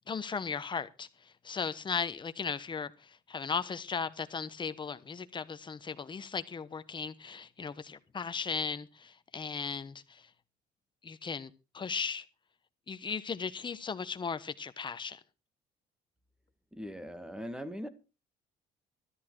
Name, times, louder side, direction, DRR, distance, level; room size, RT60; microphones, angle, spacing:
voice 1, 0.1-10.3 11.0-12.2 12.9-15.2, left 5 dB, 30° left, 1.2 m, -37 dB
voice 2, 16.7-17.9, equal, 5° right, 1.7 m, -40 dB
13.5 x 11.0 x 4.6 m
cardioid pair, 110°, 17 cm